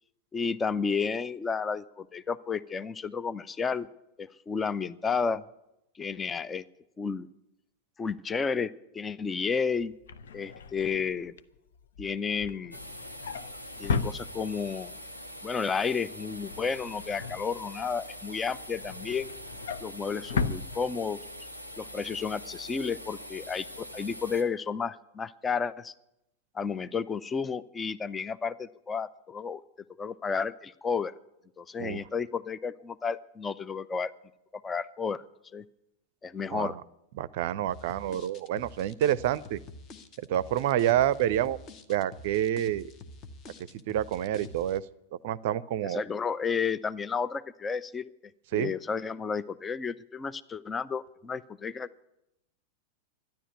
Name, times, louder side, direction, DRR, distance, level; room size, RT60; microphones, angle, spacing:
voice 1, 0.3-3.9 4.2-5.4 6.0-6.6 7.0-7.3 8.0-9.9 10.3-11.3 12.0-12.8 13.8-15.0 15.4-19.3 19.8-21.2 21.8-25.9 26.5-29.6 30.0-31.1 31.6-34.1 34.6-35.2 35.5-35.6 36.2-36.8 45.8-48.1 48.5-51.9, left 5 dB, 15° left, 15 dB, 0.5 m, -32 dB
Drawer open or close, 9.8-14.8 15.2-15.5 15.8-18.0 18.4-21.4 21.8-22.0 22.2-22.3, left 5 dB, 60° left, 0.7 m, -36 dB
sound 1, 12.7-24.4, equal, 85° left, 1.4 m, -44 dB
voice 2, 36.5-36.8 37.2-39.6 40.2-41.6 41.9-42.9 43.9-44.8 45.2-46.0 48.5-48.7, right 12 dB, 50° right, 20 dB, 0.5 m, -28 dB
sound 2, 37.7-44.8, left 2 dB, 35° left, 1.3 m, -47 dB
12.5 x 10.5 x 9.5 m, 0.84 s
figure-of-eight pair, 90°, 0 cm